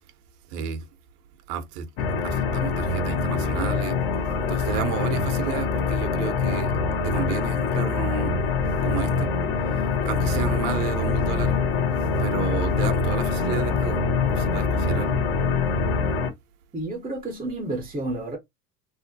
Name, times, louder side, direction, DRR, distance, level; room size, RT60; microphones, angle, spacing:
voice 1, 0.5-0.8 1.5-1.9 2.2-4.0 4.5-6.7 7.0-8.3 8.8-9.3 10.0-11.6 12.2-14.0 14.3-15.2, right 9 dB, 70° right, 0.6 m, -32 dB
sound 1, 2.0-16.3, left 4 dB, 45° left, 0.7 m, -24 dB
voice 2, 16.7-18.4, right 2 dB, 10° right, 0.5 m, -30 dB
2.5 x 2.1 x 2.5 m
hypercardioid pair, 75°, 48 cm